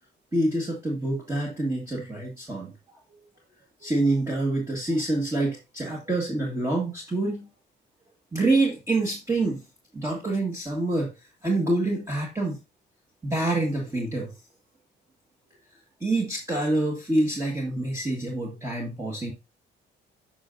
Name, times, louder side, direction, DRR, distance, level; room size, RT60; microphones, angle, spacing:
voice 1, 0.3-2.7 3.8-7.5 8.3-9.6 9.9-11.1 11.4-12.6 13.2-14.3 16.0-19.3, right 2 dB, 15° right, 1.7 m, -26 dB
8.2 x 5.7 x 2.6 m
cardioid pair, 90°, 20 cm